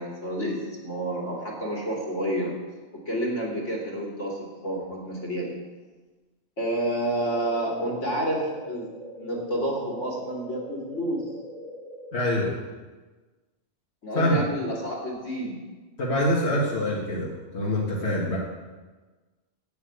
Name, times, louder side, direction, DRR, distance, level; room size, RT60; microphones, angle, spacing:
voice 1, 0.0-2.5 2.9-5.6 6.6-8.9 9.2-11.2 14.0-15.6, right 1 dB, 85° left, -2 dB, 3.1 m, -29 dB
sound 1, 7.1-12.1, equal, 5° left, 3.8 m, -42 dB
voice 2, 12.1-12.5 14.2-14.4 16.0-18.4, left 1 dB, 60° left, -4 dB, 2.1 m, -25 dB
9.2 x 8.7 x 8.1 m, 1.3 s
omnidirectional pair, 1.2 m